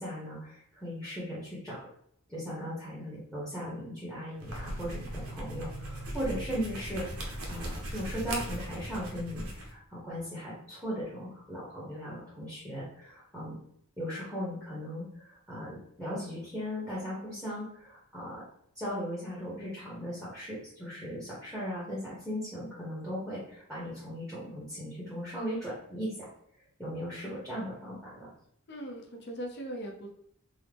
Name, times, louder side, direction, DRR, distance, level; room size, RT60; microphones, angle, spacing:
voice 1, 0.0-1.9 2.3-13.6 14.0-18.4 18.7-26.3 26.8-28.3, equal, 5° left, -8 dB, 0.8 m, -38 dB
sound 1, 4.3-9.7, right 1 dB, 70° right, 0.7 m, -38 dB
voice 2, 28.7-30.1, right 1 dB, 50° left, 2 dB, 0.6 m, -39 dB
3.6 x 2.0 x 3.3 m, 0.69 s
head